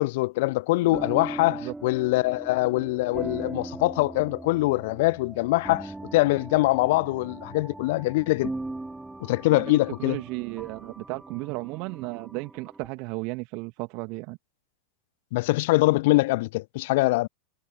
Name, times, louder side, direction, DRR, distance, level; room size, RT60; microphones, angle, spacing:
voice 1, 0.0-8.5 9.2-10.2 15.3-17.3, left 21 dB, 50° left, 0.4 m, -23 dB
sound 1, 0.8-12.9, right 2 dB, 5° right, 2.8 m, -39 dB
voice 2, 9.5-14.4, right 29 dB, 45° right, 2.1 m, -34 dB
figure-of-eight pair, 90°, 0 cm